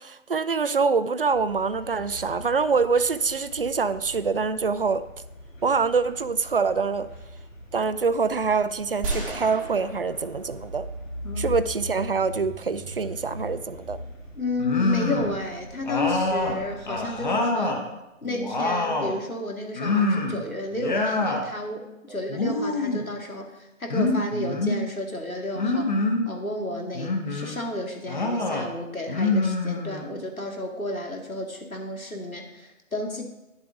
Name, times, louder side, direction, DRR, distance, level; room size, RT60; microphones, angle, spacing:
voice 1, 0.0-5.0 5.6-7.1 7.7-10.9 11.4-14.0, right 5 dB, 45° right, 13 dB, 0.4 m, -25 dB
sound 1, 1.3-17.3, left 1 dB, 70° left, 3.1 m, -41 dB
sound 2, 9.0-11.3, right 2 dB, 5° right, 1.1 m, -35 dB
voice 2, 14.4-17.8 18.2-23.5 23.8-25.9 26.3-33.2, left 2 dB, 90° left, 2 dB, 2.2 m, -32 dB
sound 3, 14.6-15.4 15.8-17.8 18.2-19.2 19.8-20.4 20.7-21.4 22.3-23.1 23.9-24.8 25.6-26.3 26.9-27.6 28.1-28.7 29.1-30.2, left 2 dB, 35° left, 1.2 m, -25 dB
10.5 x 7.9 x 3.8 m, 0.99 s
figure-of-eight pair, 150°, 41 cm